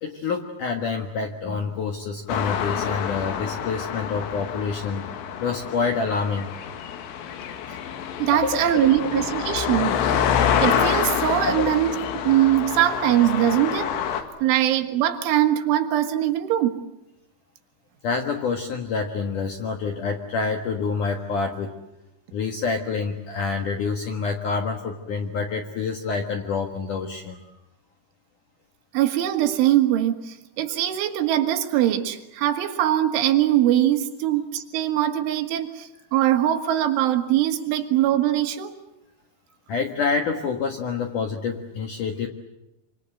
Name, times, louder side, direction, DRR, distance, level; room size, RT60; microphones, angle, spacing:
voice 1, 0.0-5.1 5.4-6.5 7.5-7.6 8.3-8.6 9.1-9.2 11.6-11.7 14.4-14.5 18.0-21.7 22.3-27.4 39.7-42.3, left 5 dB, 60° left, 5 dB, 2.2 m, -27 dB
sound 1, 2.3-14.2, left 8 dB, 85° left, 4.4 m, -27 dB
voice 2, 8.2-10.0 10.6-11.9 12.2-14.0 14.4-16.8 28.9-38.7, right 12 dB, 75° right, 7 dB, 4.0 m, -22 dB
26.0 x 26.0 x 7.8 m, 0.91 s
omnidirectional pair, 5.7 m